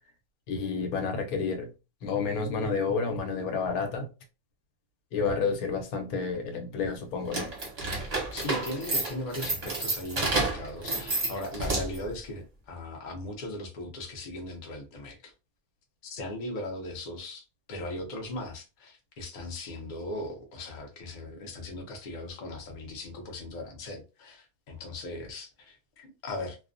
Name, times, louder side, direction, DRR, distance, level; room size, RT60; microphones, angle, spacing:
voice 1, 0.5-1.7 2.0-4.1 5.1-7.5, left 5 dB, 80° left, 1.1 m, -30 dB
sound 1, 7.2-12.1, right 2 dB, 35° right, 0.7 m, -30 dB
voice 2, 8.3-15.3 16.0-26.6, left 1 dB, 50° left, 0.5 m, -38 dB
2.4 x 2.1 x 2.5 m
omnidirectional pair, 1.5 m